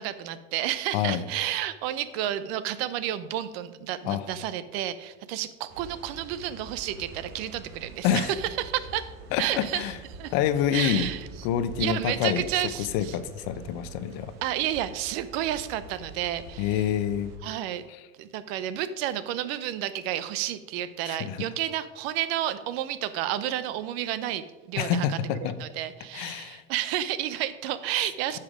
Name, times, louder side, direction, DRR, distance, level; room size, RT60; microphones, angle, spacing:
voice 1, 0.0-9.1 9.4-9.8 10.1-10.3 10.7-11.3 11.8-13.2 14.4-16.9 17.4-17.9 18.2-28.4, right 12 dB, 80° right, 14 dB, 0.7 m, -31 dB
voice 2, 0.9-1.2 4.0-4.2 8.0-8.3 9.3-10.0 10.3-11.1 11.4-12.4 12.9-14.3 16.6-17.3 21.1-21.4 24.8-25.5 26.1-26.6, left 9 dB, 75° left, 13 dB, 0.8 m, -27 dB
sound 1, 5.7-17.4, right 3 dB, 60° right, 1.4 m, -45 dB
9.7 x 5.9 x 5.0 m, 1.2 s
supercardioid pair, 100°, 30 cm